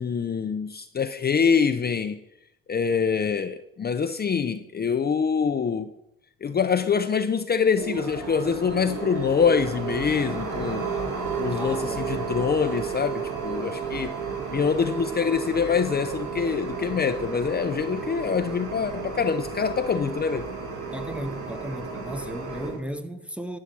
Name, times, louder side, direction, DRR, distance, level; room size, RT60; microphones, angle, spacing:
voice 1, 0.0-2.2 2.7-5.9 6.4-10.9 11.4-14.1 14.5-20.5, left 6 dB, 30° left, 0.6 m, -25 dB
sound 1, 7.8-22.8, right 5 dB, 85° right, 2.5 m, -32 dB
voice 2, 11.5-12.3 20.9-23.6, equal, 5° right, 0.9 m, -35 dB
11.0 x 5.9 x 7.4 m
cardioid pair, 90°, 30 cm